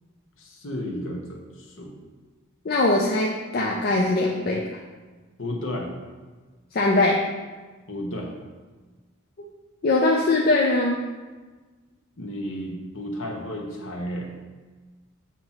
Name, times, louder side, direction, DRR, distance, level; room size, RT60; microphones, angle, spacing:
voice 1, 0.4-1.9 5.4-6.0 7.9-8.3 12.2-14.3, equal, 65° left, 1 dB, 1.0 m, -33 dB
voice 2, 2.7-4.6 6.7-7.2 9.8-11.0, left 2 dB, 45° left, -1 dB, 0.4 m, -21 dB
7.3 x 2.9 x 5.6 m, 1.3 s
head